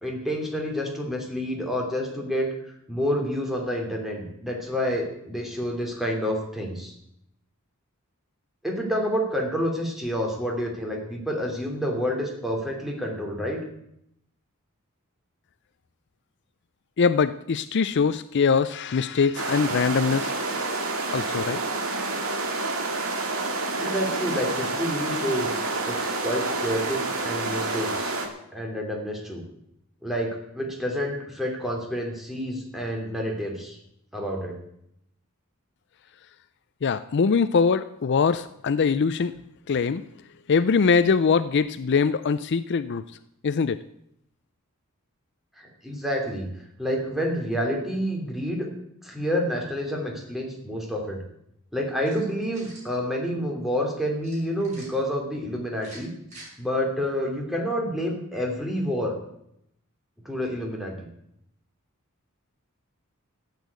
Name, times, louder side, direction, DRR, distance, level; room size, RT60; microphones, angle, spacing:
voice 1, 0.0-2.5 2.9-6.9 8.6-13.6 23.8-28.1 28.5-29.4 30.0-33.8 34.1-34.6 45.6-46.5 46.8-48.7 49.0-51.2 51.7-56.1 56.6-59.1 60.2-61.1, equal, ahead, 0 dB, 3.0 m, -28 dB
voice 2, 17.0-20.3 21.1-21.6 36.8-39.4 39.7-40.0 40.5-43.0 43.4-43.8, left 5 dB, 55° left, 13 dB, 0.4 m, -22 dB
sound 1, 19.3-28.3, right 3 dB, 70° right, 2.2 m, -28 dB
sound 2, 52.0-52.9 54.2-54.9 55.7-56.5, right 1 dB, 35° right, 6.5 m, -47 dB
13.0 x 8.3 x 8.2 m, 0.76 s
head